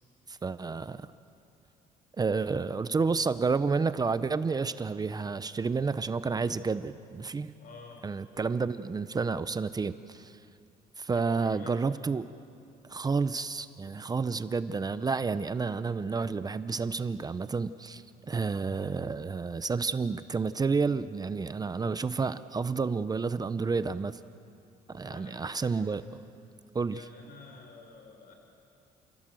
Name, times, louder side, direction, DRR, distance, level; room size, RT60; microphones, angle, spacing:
voice 1, 0.3-1.1 2.2-7.5 8.0-10.3 11.0-12.3 12.9-24.2 24.9-26.0 26.7-27.0, right 4 dB, 25° right, 13 dB, 0.7 m, -30 dB
voice 2, 7.6-8.0 11.1-11.7 24.9-25.7 26.9-28.3, left 4 dB, 60° left, 3 dB, 4.2 m, -50 dB
28.5 x 16.5 x 7.7 m, 2.5 s
cardioid pair, 110°, 17 cm